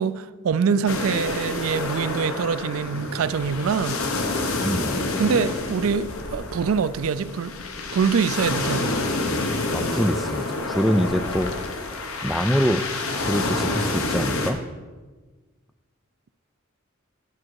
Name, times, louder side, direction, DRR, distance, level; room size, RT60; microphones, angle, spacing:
voice 1, 0.0-4.0 5.2-7.6 7.9-8.9, right 6 dB, 75° right, 0.4 m, -24 dB
sound 1, 0.9-14.5, left 2 dB, 90° left, 1.1 m, -28 dB
voice 2, 4.6-5.0 9.7-11.9 12.2-12.8 13.2-14.6, equal, ahead, 0.4 m, -25 dB
11.0 x 6.2 x 4.7 m
head